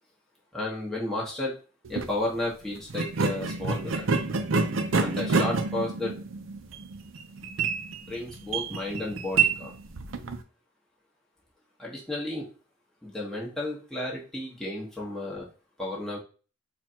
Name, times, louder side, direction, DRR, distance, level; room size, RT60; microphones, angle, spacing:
voice 1, 0.5-1.5 1.9-4.2 5.0-6.1 7.4-7.5 8.0-9.7 11.8-12.5 13.0-15.5 15.8-16.2, left 2 dB, ahead, -5 dB, 1.3 m, -33 dB
sound 1, 1.8-2.1 2.9-10.4, right 4 dB, 85° right, 0.6 m, -28 dB
4.3 x 2.5 x 4.4 m, 0.36 s
head